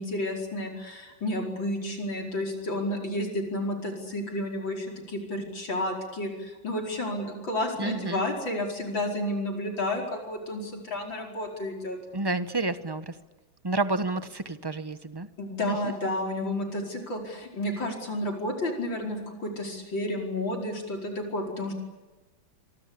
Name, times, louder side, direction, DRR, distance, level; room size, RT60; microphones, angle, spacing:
voice 1, 0.0-12.0 15.4-21.7, left 1 dB, 70° left, 1 dB, 5.6 m, -31 dB
voice 2, 7.8-8.3 12.1-13.2 13.6-15.3 15.7-15.9, right 2 dB, 20° right, 11 dB, 0.7 m, -30 dB
26.5 x 24.0 x 8.5 m, 1.2 s
omnidirectional pair, 2.2 m